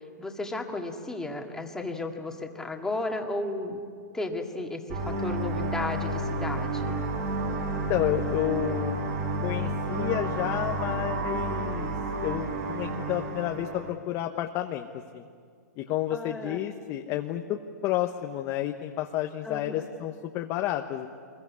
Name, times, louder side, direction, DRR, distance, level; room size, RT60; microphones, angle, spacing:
voice 1, 0.0-3.8 4.1-7.0 16.1-16.6 19.4-19.9, left 2 dB, 5° left, 2 dB, 2.0 m, -34 dB
sound 1, 4.9-13.9, right 2 dB, 50° right, 6.4 m, -30 dB
voice 2, 7.7-9.0 9.4-11.9 12.2-14.9 15.1-15.2 15.8-21.1, left 13 dB, 30° left, 4 dB, 1.1 m, -30 dB
24.5 x 22.0 x 9.6 m, 2.1 s
hypercardioid pair, 145°, 10 cm